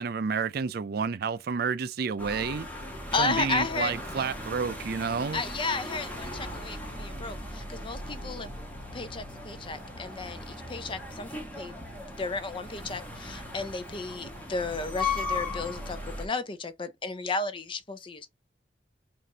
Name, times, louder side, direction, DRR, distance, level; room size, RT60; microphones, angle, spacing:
voice 1, 0.0-2.7 3.2-5.4, right 5 dB, 60° right, 0.4 m, -30 dB
sound 1, 2.2-16.3, left 3 dB, 10° left, 1.2 m, -38 dB
voice 2, 3.1-3.9 5.3-8.5 8.9-11.8 12.2-18.3, left 4 dB, 30° left, 0.5 m, -33 dB
5.3 x 2.6 x 2.8 m
head